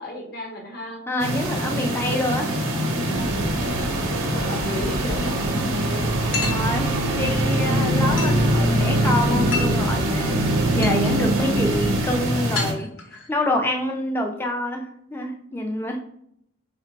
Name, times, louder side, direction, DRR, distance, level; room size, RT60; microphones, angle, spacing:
voice 1, 0.0-1.0 3.5-3.9 4.3-5.5, left 1 dB, 50° left, 0 dB, 0.9 m, -34 dB
voice 2, 1.1-2.5 5.5-5.7 6.4-12.9 13.3-16.0, left 1 dB, 10° left, 2 dB, 0.3 m, -27 dB
sound 1, 1.2-12.7, right 1 dB, 90° right, 0.7 m, -23 dB
Organ, 3.1-12.3, right 2 dB, 55° right, 0.4 m, -31 dB
sound 2, 6.3-6.7 8.2-8.4 9.5-9.8 10.4-10.5 10.8-11.1 12.5-13.3, left 5 dB, 75° left, 0.7 m, -29 dB
3.1 x 2.1 x 4.0 m, 0.72 s
head